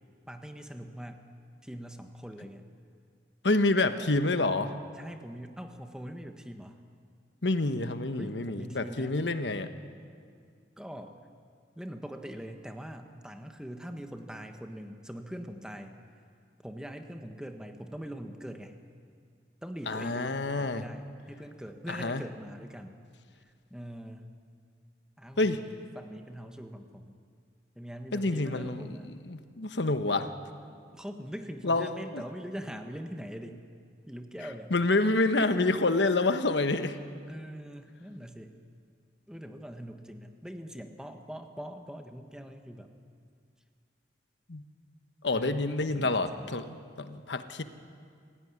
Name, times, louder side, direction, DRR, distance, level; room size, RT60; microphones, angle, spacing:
voice 1, 0.3-1.3 1.6-2.6 4.9-6.8 8.2-9.2 10.8-11.2 11.7-16.0 16.6-18.7 19.6-23.0 23.3-24.3 25.2-27.2 27.7-29.1 30.9-33.6 34.1-34.7 37.3-38.5 39.3-42.9 45.3-46.6, equal, 5° right, 5 dB, 1.3 m, -43 dB
voice 2, 3.4-4.7 7.4-9.7 19.9-20.8 21.9-22.2 25.4-25.6 28.1-30.3 31.6-32.2 34.7-37.0 44.5-44.6 45.2-47.6, left 2 dB, 80° left, 9 dB, 1.3 m, -28 dB
27.5 x 16.0 x 9.8 m, 2.2 s
head